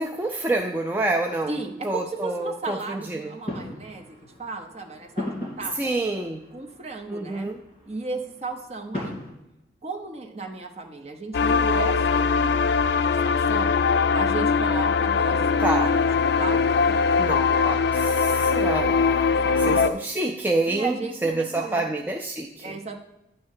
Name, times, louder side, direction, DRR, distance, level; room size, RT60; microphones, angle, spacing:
voice 1, 0.0-1.5 1.8-3.3 5.8-6.4 7.1-7.5 15.6-15.9 17.2-22.8, right 2 dB, 10° right, 2 dB, 0.3 m, -27 dB
sound 1, 1.4-9.3, left 1 dB, 30° left, 2.6 m, -39 dB
voice 2, 1.5-5.9 6.5-7.5 7.9-9.2 9.8-12.6 13.0-13.8 14.1-15.5 15.7-17.2 18.4-18.7 19.3-19.9 20.7-21.8 22.6-23.0, right 3 dB, 35° right, 4 dB, 0.8 m, -35 dB
sound 2, 11.3-19.9, left 5 dB, 65° left, 0.3 m, -21 dB
9.3 x 3.1 x 6.5 m, 0.91 s
head